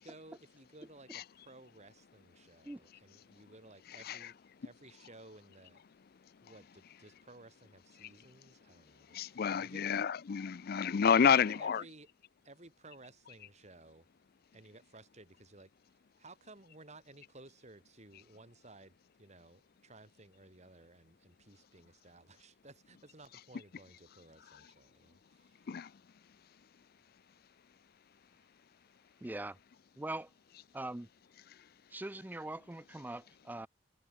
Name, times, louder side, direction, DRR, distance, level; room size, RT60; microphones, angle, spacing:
voice 1, 0.0-5.8 6.4-9.9 11.1-12.1 12.4-14.1 14.5-15.7 16.2-25.7, right 2 dB, 40° right, 3.8 m, -57 dB
voice 2, 9.1-11.8 25.7-25.9, left 7 dB, 55° left, 0.4 m, -29 dB
voice 3, 29.2-29.6 30.0-30.3 30.7-31.1 31.9-33.7, right 2 dB, 10° right, 0.4 m, -42 dB
head